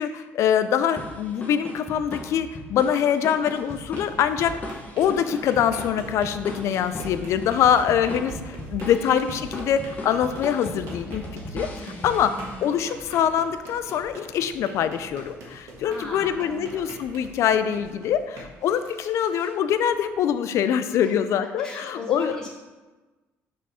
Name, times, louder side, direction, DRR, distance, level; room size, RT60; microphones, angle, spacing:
voice 1, 0.0-11.7 12.0-22.4, left 9 dB, 65° left, 11 dB, 0.4 m, -24 dB
sound 1, 1.0-12.9, left 1 dB, 30° left, 1.0 m, -38 dB
sound 2, 3.3-20.3, right 1 dB, 75° right, 1.5 m, -44 dB
sound 3, 4.4-4.5 5.0-5.1 7.0-7.4 8.3-8.4 8.7-8.8 9.4-9.6 11.1-11.2 11.5-11.9, right 4 dB, 10° right, 1.9 m, -41 dB
voice 2, 8.8-9.2 11.7-12.6 15.8-16.9 21.0-22.5, left 2 dB, 10° left, -6 dB, 1.4 m, -38 dB
6.2 x 3.6 x 4.3 m, 1.2 s
cardioid pair, 105°, 5 cm